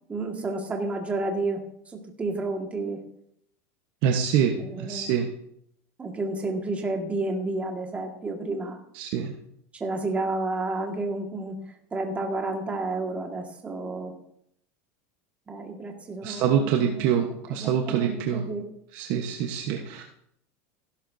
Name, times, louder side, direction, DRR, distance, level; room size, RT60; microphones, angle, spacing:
voice 1, 0.1-3.0 4.6-5.1 6.0-8.8 9.7-11.6 11.9-14.1 15.5-18.6, right 2 dB, 15° right, 1 dB, 1.9 m, -31 dB
voice 2, 4.0-5.3 8.9-9.3 16.2-18.4 18.9-20.0, right 8 dB, 55° right, 3 dB, 1.2 m, -25 dB
15.0 x 12.5 x 2.8 m, 0.73 s
supercardioid pair, 135°, 8 cm